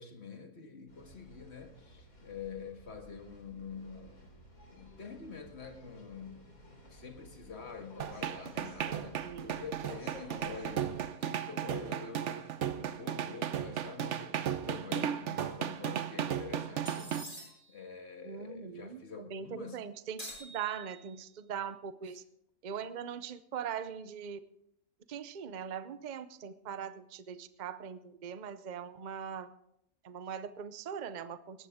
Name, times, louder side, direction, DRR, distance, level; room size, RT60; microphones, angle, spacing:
voice 1, 0.0-4.3 4.7-6.4 6.9-19.8 22.1-22.2, left 5 dB, 50° left, 5 dB, 1.9 m, -46 dB
sound 1, 0.9-11.0, left 1 dB, 85° left, 3.9 m, -55 dB
sound 2, 8.0-17.2, right 9 dB, 60° right, 1.0 m, -35 dB
voice 2, 9.2-9.6 18.2-22.2 22.6-24.4 25.1-29.5 30.0-31.7, right 8 dB, 45° right, 13 dB, 0.7 m, -41 dB
sound 3, 16.8-17.8 20.2-21.3, equal, 20° left, 6.4 m, -47 dB
18.5 x 13.5 x 3.6 m, 0.76 s
omnidirectional pair, 1.5 m